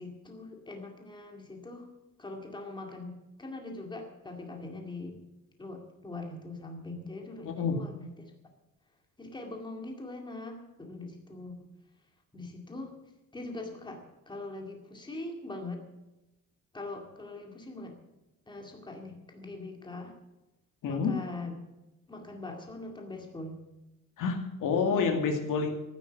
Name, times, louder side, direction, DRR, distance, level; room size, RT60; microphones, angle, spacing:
voice 1, 0.0-1.9 2.2-5.2 5.6-8.3 9.2-11.7 12.3-13.0 13.3-15.8 16.7-17.9 18.5-20.2 20.8-21.6 22.1-23.6 24.7-25.1, left 2 dB, 15° left, 2 dB, 2.2 m, -42 dB
voice 2, 7.4-7.8 20.8-21.1 24.2-25.7, left 5 dB, 85° left, 3 dB, 2.4 m, -28 dB
14.0 x 9.7 x 7.9 m, 0.99 s
cardioid pair, 160°, 31 cm